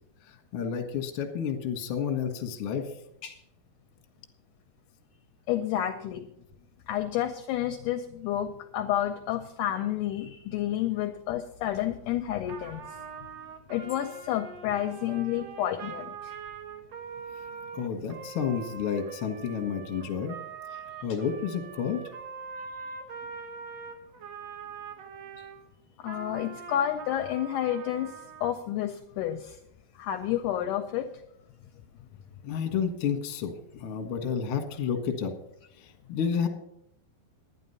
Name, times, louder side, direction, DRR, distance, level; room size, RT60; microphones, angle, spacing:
voice 1, 0.5-2.8 17.7-20.4 21.0-22.0 32.4-33.5 33.8-35.3 35.8-36.5, left 7 dB, 65° left, 5 dB, 1.3 m, -30 dB
voice 2, 5.5-6.3 6.9-12.9 13.7-16.3 25.4-25.5 26.0-29.6 30.0-31.1, left 11 dB, 80° left, 8 dB, 1.8 m, -30 dB
Trumpet, 12.5-25.6 26.0-28.6, right 6 dB, 65° right, 1.6 m, -43 dB
11.0 x 9.7 x 5.5 m, 0.76 s
omnidirectional pair, 4.3 m